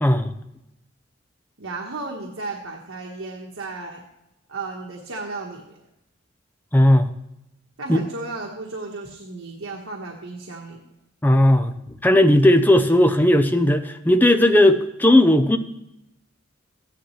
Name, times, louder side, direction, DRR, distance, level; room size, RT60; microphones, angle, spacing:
voice 1, 0.0-0.3 6.7-7.1 7.9-8.0 11.2-11.7 12.0-15.6, left 1 dB, 10° left, 7 dB, 0.6 m, -16 dB
voice 2, 1.6-4.0 4.5-5.8 7.8-10.8, right 3 dB, 90° right, 0 dB, 1.4 m, -34 dB
14.5 x 10.5 x 3.2 m, 0.87 s
head